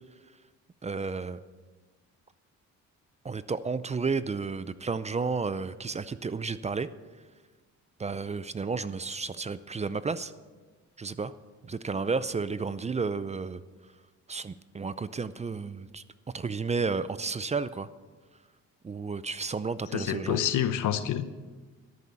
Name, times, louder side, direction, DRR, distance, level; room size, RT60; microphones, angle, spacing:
voice 1, 0.8-1.4 3.2-6.9 8.0-10.3 11.0-11.3 11.7-13.6 14.3-16.0 16.3-17.9 18.8-20.4, right 4 dB, 20° right, 15 dB, 0.5 m, -32 dB
voice 2, 19.9-21.4, left 10 dB, 80° left, 12 dB, 0.9 m, -28 dB
13.0 x 7.0 x 8.1 m, 1.3 s
cardioid pair, 90°, 30 cm